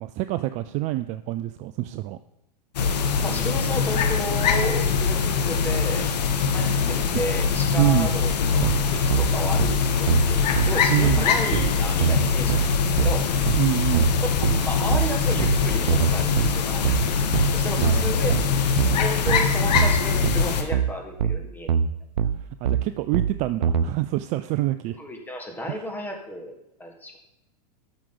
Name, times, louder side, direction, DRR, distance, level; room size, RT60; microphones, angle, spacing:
voice 1, 0.0-2.2 7.1-7.2 7.8-8.1 10.9-11.3 13.6-14.1 17.8-18.2 22.6-25.0 25.7-25.8, right 16 dB, 35° right, 11 dB, 0.4 m, -26 dB
sound 1, 2.7-20.6, left 6 dB, 75° left, 1.2 m, -23 dB
voice 2, 3.2-6.1 6.5-9.7 10.0-12.6 13.0-13.2 14.4-18.3 19.0-21.7 25.0-26.5 26.8-27.2, equal, 10° left, 2 dB, 1.7 m, -33 dB
sound 2, 8.6-23.9, right 7 dB, 85° right, 0.6 m, -24 dB
12.5 x 6.2 x 3.9 m, 0.88 s
hypercardioid pair, 115°, 21 cm